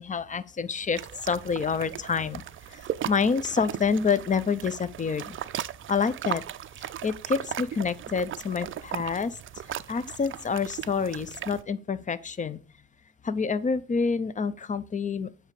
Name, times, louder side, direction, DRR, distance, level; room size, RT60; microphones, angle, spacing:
voice 1, 0.0-2.4 2.7-5.4 5.9-6.4 6.8-12.6 13.2-15.3, left 5 dB, 25° left, 0.5 m, -28 dB
sound 1, 1.0-11.6, right 11 dB, 45° right, 0.4 m, -37 dB
8.7 x 3.3 x 4.8 m
cardioid pair, 90°, 30 cm